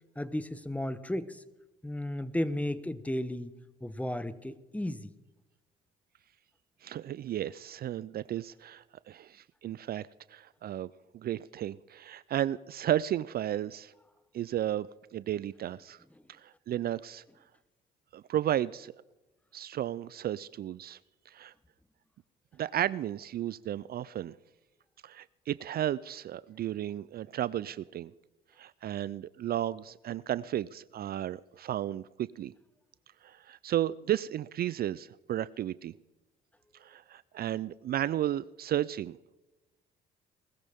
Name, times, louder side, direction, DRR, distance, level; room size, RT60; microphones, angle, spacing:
voice 1, 0.2-1.4 1.8-3.5 3.8-5.1, left 1 dB, 5° left, 14 dB, 1.1 m, -34 dB
voice 2, 6.8-13.9 14.3-16.0 16.3-17.2 18.1-18.9 19.5-21.0 21.3-21.5 22.6-24.4 25.0-28.1 28.6-32.5 33.2-36.0 36.8-39.2, right 12 dB, 50° right, 19 dB, 0.4 m, -33 dB
20.5 x 14.0 x 3.6 m, 1.0 s
supercardioid pair, 60°, 20 cm